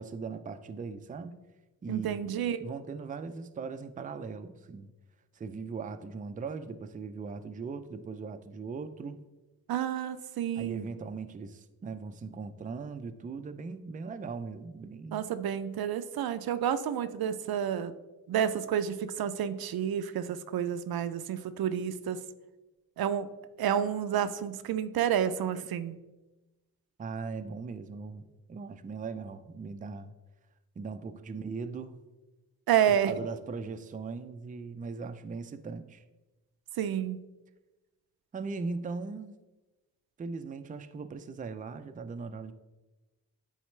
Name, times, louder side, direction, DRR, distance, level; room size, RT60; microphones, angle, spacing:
voice 1, 0.0-1.4 1.8-2.3 2.6-4.9 5.3-9.2 10.6-15.3 27.0-30.1 30.8-32.0 32.9-36.0 38.3-39.4 40.2-42.5, right 4 dB, 25° right, 9 dB, 0.4 m, -39 dB
voice 2, 1.9-2.7 9.7-10.9 15.1-17.9 18.3-22.2 23.0-26.0 32.7-33.2 36.8-37.2, right 9 dB, 80° right, 12 dB, 0.5 m, -30 dB
9.1 x 4.0 x 3.2 m, 1.1 s
cardioid pair, 90°, 36 cm